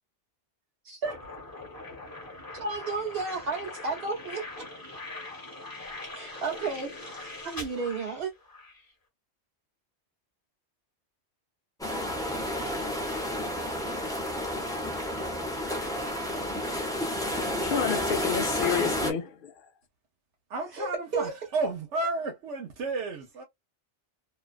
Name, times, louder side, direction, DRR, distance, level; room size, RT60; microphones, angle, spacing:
voice 1, 0.8-1.2 2.5-4.7 6.1-8.3 20.7-21.3, right 4 dB, 60° right, 0.9 m, -33 dB
sound 1, 1.0-8.8, left 2 dB, 20° left, 1.1 m, -42 dB
sound 2, 11.8-19.1, left 1 dB, 5° left, 0.6 m, -31 dB
voice 2, 17.3-19.5, left 7 dB, 55° left, 0.7 m, -30 dB
voice 3, 20.5-23.4, right 3 dB, 85° right, 1.0 m, -32 dB
2.5 x 2.3 x 2.3 m
omnidirectional pair, 1.2 m